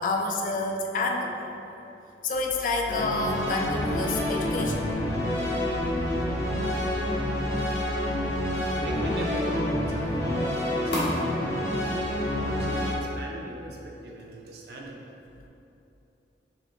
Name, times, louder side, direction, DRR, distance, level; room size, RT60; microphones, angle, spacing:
voice 1, 0.0-1.5 2.2-4.9, left 2 dB, 45° left, 2 dB, 0.3 m, -28 dB
sound 1, 2.9-12.9, left 1 dB, 15° left, 0.7 m, -28 dB
sound 2, 3.7-13.0, left 1 dB, 70° left, 1.0 m, -36 dB
voice 2, 8.8-15.0, right 1 dB, 60° right, 0 dB, 0.5 m, -39 dB
4.3 x 2.8 x 3.1 m, 2.8 s
head